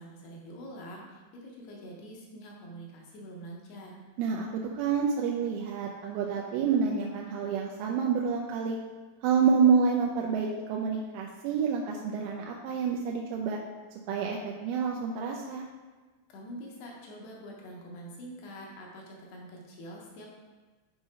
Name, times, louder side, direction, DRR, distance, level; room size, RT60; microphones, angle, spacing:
voice 1, 0.0-4.0 16.3-20.3, right 1 dB, 70° left, -2 dB, 2.7 m, -45 dB
voice 2, 4.2-8.8 9.2-13.6 14.1-15.7, right 6 dB, 90° right, -1 dB, 3.1 m, -28 dB
9.0 x 5.0 x 3.7 m, 1.3 s
omnidirectional pair, 5.4 m